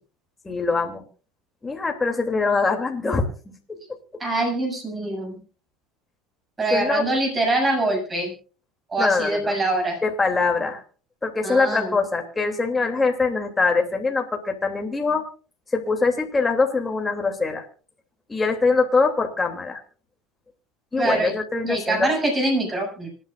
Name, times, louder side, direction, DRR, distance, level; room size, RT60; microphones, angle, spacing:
voice 1, 0.4-1.0 1.6-3.8 6.7-7.0 9.0-9.6 10.0-10.8 11.2-15.2 15.7-17.6 18.3-19.8 20.9-22.1, left 4 dB, 15° left, 3 dB, 2.8 m, -23 dB
voice 2, 4.2-5.4 6.6-8.3 8.9-10.0 11.4-11.9 21.0-21.3 21.6-23.1, right 2 dB, 20° right, 2 dB, 7.5 m, -24 dB
26.0 x 9.9 x 2.5 m, 0.38 s
supercardioid pair, 115°, 0 cm